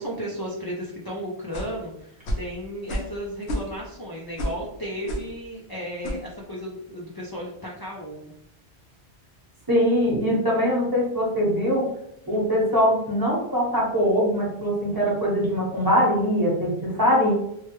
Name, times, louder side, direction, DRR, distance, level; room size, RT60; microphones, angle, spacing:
voice 1, 0.0-8.2, equal, 30° left, -4 dB, 0.4 m, -34 dB
sound 1, 1.5-1.8 2.3-2.5 2.9-3.2 3.4-3.9 4.4-4.6 5.1-5.3 6.0-6.2, equal, 85° left, 0.9 m, -30 dB
voice 2, 9.7-11.8 12.3-17.3, equal, 20° right, -6 dB, 1.1 m, -22 dB
3.1 x 2.2 x 3.0 m, 0.76 s
omnidirectional pair, 1.1 m